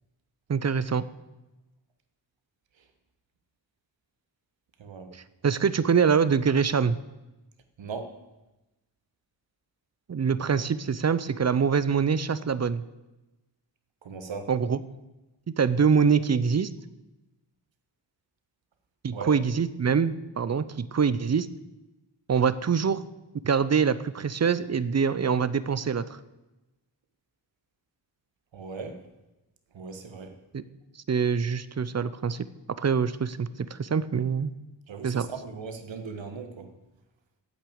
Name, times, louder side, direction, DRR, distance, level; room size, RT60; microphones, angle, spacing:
voice 1, 0.5-1.0 5.1-7.0 10.1-12.8 14.5-14.8 15.5-16.7 19.0-21.5 22.3-23.0 23.4-26.0 30.5-30.6 31.1-32.5 32.8-34.5 35.0-35.3, right 6 dB, 35° right, 15 dB, 0.6 m, -24 dB
voice 2, 4.8-5.1 7.8-8.1 14.0-14.5 19.1-19.4 28.5-29.0 29.7-30.3 34.9-36.7, right 5 dB, 80° right, 7 dB, 1.6 m, -38 dB
9.2 x 8.2 x 8.5 m, 1.0 s
wide cardioid pair, 105°, 44 cm